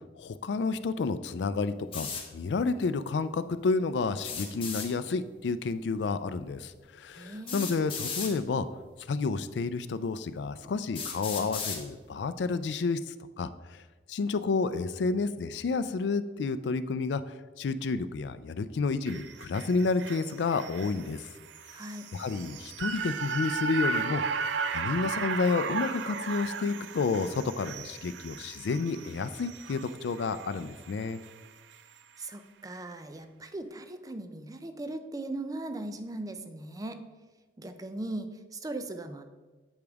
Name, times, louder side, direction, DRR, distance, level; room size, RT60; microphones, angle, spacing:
voice 1, 0.2-8.7 9.1-13.8 14.1-21.3 22.1-24.2 24.7-31.2, left 4 dB, 75° left, 13 dB, 0.4 m, -30 dB
sound 1, 1.9-2.2 4.2-4.9 6.3-6.4 7.5-8.3 9.3-9.4 10.1-10.2 10.9-11.8, left 6 dB, 30° left, 1.0 m, -35 dB
voice 2, 7.2-7.7 21.7-22.1 32.2-37.0 37.6-39.3, right 2 dB, 20° right, 8 dB, 0.5 m, -39 dB
sound 2, 19.1-31.4 31.7-31.8, right 5 dB, 85° right, 0.4 m, -36 dB
8.0 x 5.1 x 3.5 m, 1.3 s
head